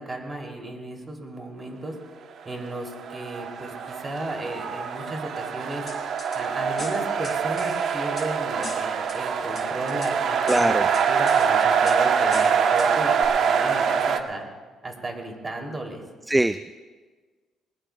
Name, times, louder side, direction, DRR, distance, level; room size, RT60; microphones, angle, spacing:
voice 1, 0.0-1.9 2.4-5.8 6.3-14.4 14.8-16.0, right 1 dB, 30° right, 1 dB, 3.0 m, -34 dB
sound 1, 2.7-14.2, right 6 dB, 65° right, 1.0 m, -24 dB
sound 2, 5.9-6.4 6.8-8.3 8.6-9.2 9.6-10.1 10.5-11.5 11.9-12.0 12.3-12.9 13.2-13.3, left 5 dB, 35° left, 3.8 m, -39 dB
voice 2, 10.5-10.9 16.3-16.8, right 1 dB, 10° right, 13 dB, 0.3 m, -22 dB
20.5 x 20.5 x 2.3 m, 1.4 s
cardioid pair, 95°, 0 cm